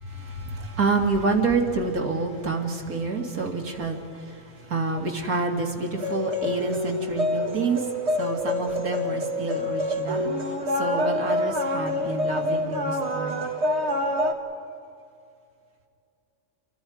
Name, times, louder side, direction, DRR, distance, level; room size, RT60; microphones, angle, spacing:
voice 1, 0.1-4.0 4.3-4.4 4.7-7.8 8.2-10.3 10.8-13.4, right 3 dB, 85° right, 1 dB, 2.8 m, -28 dB
sound 1, 6.0-14.3, left 1 dB, 50° right, 2.0 m, -27 dB
29.5 x 23.5 x 5.0 m, 2.4 s
omnidirectional pair, 1.5 m